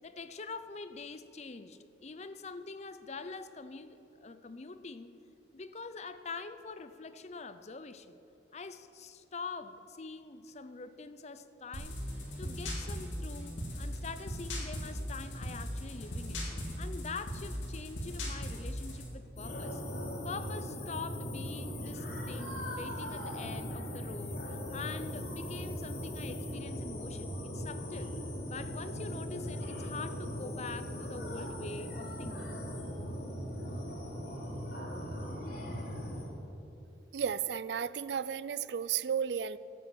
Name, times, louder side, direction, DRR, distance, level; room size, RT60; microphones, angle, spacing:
voice 1, 0.0-5.2 5.5-8.2 8.5-12.0 12.4-16.5 16.8-19.8 20.2-28.1 28.5-32.5, left 4 dB, 35° left, 12 dB, 0.6 m, -44 dB
sound 1, 11.7-19.1, equal, 85° left, 2.7 m, -38 dB
sound 2, 19.4-36.3, equal, 55° left, 2.9 m, -39 dB
voice 2, 37.1-39.6, right 7 dB, 60° right, 17 dB, 0.4 m, -33 dB
13.0 x 8.7 x 7.9 m, 2.9 s
head